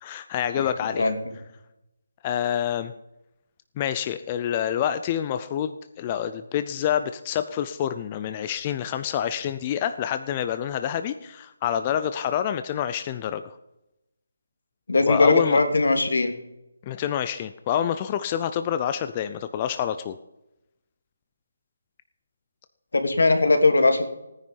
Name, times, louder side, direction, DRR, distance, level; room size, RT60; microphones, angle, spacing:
voice 1, 0.0-1.1 2.2-2.9 3.8-13.6 15.1-15.6 16.8-20.2, left 9 dB, 15° left, 10 dB, 0.4 m, -27 dB
voice 2, 0.9-1.3 14.9-16.3 22.9-24.1, left 3 dB, 85° left, 7 dB, 2.7 m, -20 dB
17.5 x 9.7 x 5.3 m, 0.90 s
hypercardioid pair, 175°, 0 cm